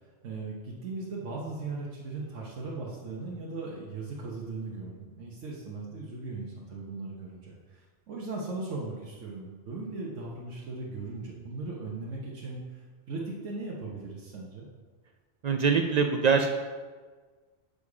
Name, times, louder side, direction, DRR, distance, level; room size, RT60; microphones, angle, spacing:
voice 1, 0.2-14.7, right 3 dB, 90° right, -4 dB, 1.3 m, -38 dB
voice 2, 15.4-16.5, right 5 dB, 70° right, 5 dB, 0.4 m, -23 dB
6.9 x 5.2 x 4.8 m, 1.4 s
omnidirectional pair, 1.2 m